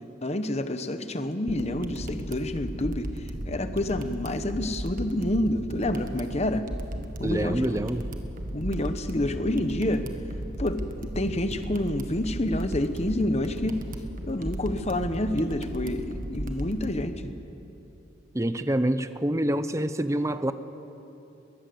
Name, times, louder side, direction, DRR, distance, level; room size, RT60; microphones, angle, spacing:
voice 1, 0.2-6.7 7.2-7.9 8.5-10.1 10.6-13.8 14.2-17.3, left 1 dB, 35° left, 9 dB, 1.1 m, -28 dB
sound 1, 1.5-16.9, right 1 dB, 45° right, 1.5 m, -36 dB
voice 2, 7.2-8.1 18.3-20.5, right 1 dB, 15° right, 11 dB, 0.7 m, -26 dB
22.5 x 18.5 x 7.8 m, 2.9 s
head